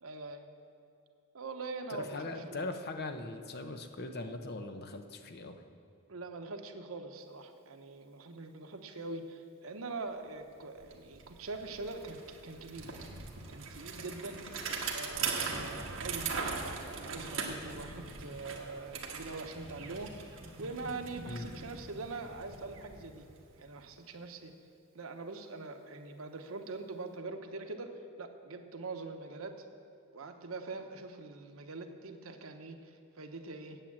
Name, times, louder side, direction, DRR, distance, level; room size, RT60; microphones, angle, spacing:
voice 1, 0.0-0.5 1.3-2.2 2.5-2.7 6.1-12.9 13.5-14.4 14.9-20.2 20.6-23.3 23.6-24.5 24.9-29.7 30.1-33.8, right 3 dB, 90° right, 6 dB, 0.9 m, -43 dB
voice 2, 1.9-5.6 21.3-21.5, left 2 dB, 50° left, 7 dB, 0.8 m, -40 dB
Bicycle, 10.4-10.5 10.8-23.7, right 5 dB, 70° right, 1.4 m, -40 dB
8.9 x 8.5 x 7.5 m, 2.6 s
head